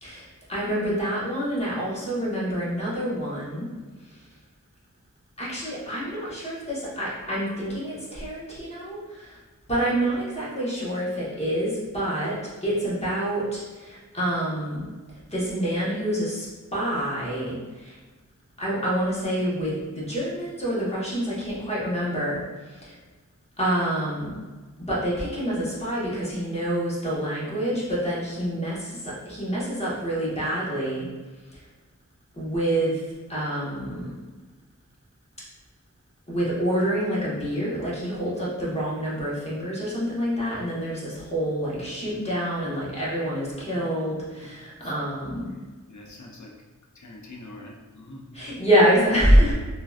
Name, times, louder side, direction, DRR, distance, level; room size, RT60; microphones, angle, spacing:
voice 1, 0.0-3.7 4.0-4.3 5.4-9.4 9.7-14.8 15.3-18.0 18.6-23.0 23.6-24.3 24.9-31.1 31.5-31.6 32.3-33.0 33.3-34.1 36.3-45.5 48.3-49.5, equal, 20° left, -8 dB, 1.2 m, -27 dB
voice 2, 45.9-46.5 46.9-48.4, left 1 dB, 55° left, -1 dB, 0.7 m, -44 dB
3.8 x 2.5 x 2.4 m, 1.3 s
wide cardioid pair, 70°, 34 cm